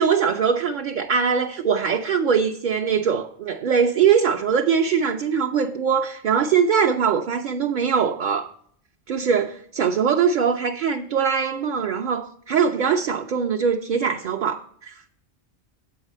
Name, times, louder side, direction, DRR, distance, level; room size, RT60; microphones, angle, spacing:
voice 1, 0.0-8.5 9.1-15.0, right 6 dB, 55° right, 0.6 m, -22 dB
8.0 x 4.8 x 6.4 m
omnidirectional pair, 1.1 m